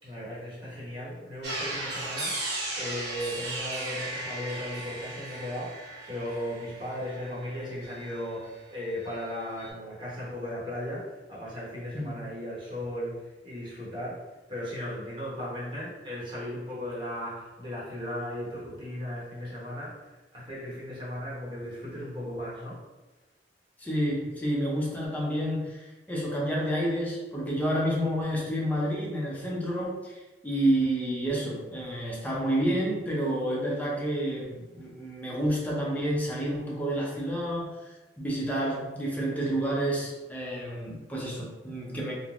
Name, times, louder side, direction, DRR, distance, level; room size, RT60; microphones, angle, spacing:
voice 1, 0.0-2.4 2.7-14.2 14.5-22.8, left 1 dB, 30° right, -7 dB, 1.0 m, -36 dB
sound 1, 1.4-8.6 8.9-9.7, right 2 dB, 70° right, 0.9 m, -37 dB
voice 2, 23.8-42.1, right 1 dB, 10° left, -4 dB, 0.6 m, -29 dB
3.1 x 2.1 x 2.4 m, 1.1 s
head